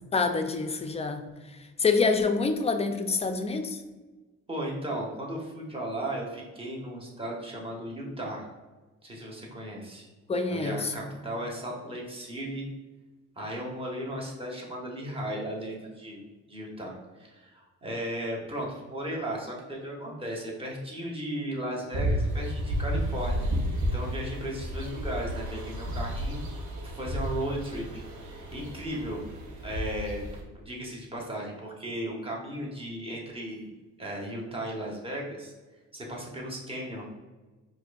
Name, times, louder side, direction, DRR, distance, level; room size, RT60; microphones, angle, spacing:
voice 1, 0.1-3.8 10.3-11.1, left 4 dB, 20° left, 7 dB, 0.3 m, -27 dB
voice 2, 4.5-8.5 9.0-10.1 10.5-12.7 13.3-23.5 23.9-26.4 26.8-29.2 29.6-33.7 34.0-35.5 35.9-37.0, right 1 dB, 20° right, -2 dB, 1.1 m, -36 dB
sound 1, 21.9-30.4, equal, 75° right, 0.8 m, -32 dB
4.5 x 2.6 x 2.3 m, 1.2 s
cardioid pair, 90°, 30 cm